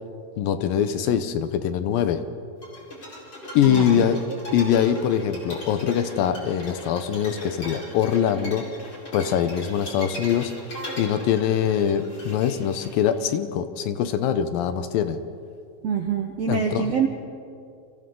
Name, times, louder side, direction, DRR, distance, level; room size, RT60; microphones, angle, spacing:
voice 1, 0.4-2.2 3.5-4.2 4.5-8.7 9.1-10.5 11.0-15.2 16.5-16.9, left 9 dB, 75° left, 10 dB, 2.5 m, -23 dB
sound 1, 2.6-13.1, equal, 30° left, 4.9 m, -38 dB
voice 2, 3.6-4.1 15.8-17.1, right 7 dB, 70° right, 4 dB, 1.5 m, -25 dB
30.0 x 25.0 x 3.8 m, 2.4 s
omnidirectional pair, 4.3 m